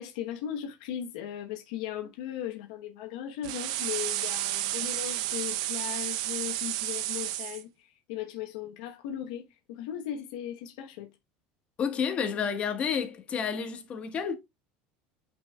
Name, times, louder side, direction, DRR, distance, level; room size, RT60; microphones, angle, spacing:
voice 1, 0.0-11.1, left 10 dB, 90° left, 1.1 m, -37 dB
sound 1, 3.4-7.6, right 14 dB, 80° right, 0.7 m, -31 dB
voice 2, 11.8-14.4, left 7 dB, 30° left, 1.4 m, -30 dB
8.7 x 5.2 x 2.3 m
cardioid pair, 145°, 4 cm